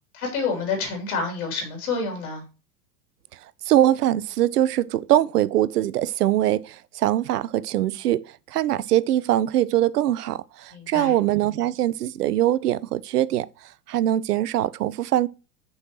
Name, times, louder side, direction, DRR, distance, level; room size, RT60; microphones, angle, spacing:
voice 1, 0.1-2.4 10.7-11.1, left 4 dB, 60° left, 3.7 m, -28 dB
voice 2, 3.7-8.2 8.5-10.4 10.9-13.5 13.9-15.3, right 13 dB, 70° right, 0.6 m, -22 dB
6.5 x 5.5 x 4.4 m
figure-of-eight pair, 90°, 48 cm